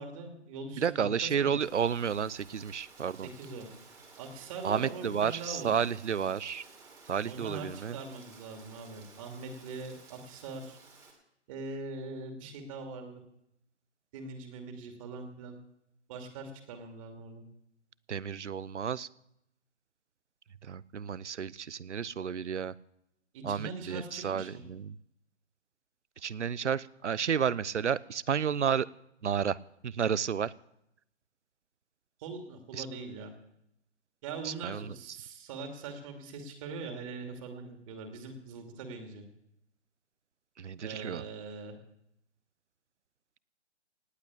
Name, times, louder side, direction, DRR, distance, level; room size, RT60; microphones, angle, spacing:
voice 1, 0.0-1.5 3.2-3.7 4.2-5.8 7.3-10.8 11.5-13.2 14.1-15.6 16.1-17.4 23.3-24.6 32.2-33.3 34.2-39.2 40.8-41.8, right 3 dB, 30° right, 4 dB, 2.6 m, -42 dB
voice 2, 0.8-3.3 4.6-6.6 7.1-8.0 18.1-19.1 20.7-22.7 23.4-24.9 26.2-28.9 29.2-29.6 29.8-30.5 32.8-32.9 34.4-34.9 40.6-41.2, right 7 dB, 75° right, 21 dB, 0.8 m, -31 dB
Rain, 1.6-11.1, right 4 dB, 10° right, 2.3 m, -55 dB
18.0 x 8.2 x 8.7 m, 0.78 s
figure-of-eight pair, 145°, 35 cm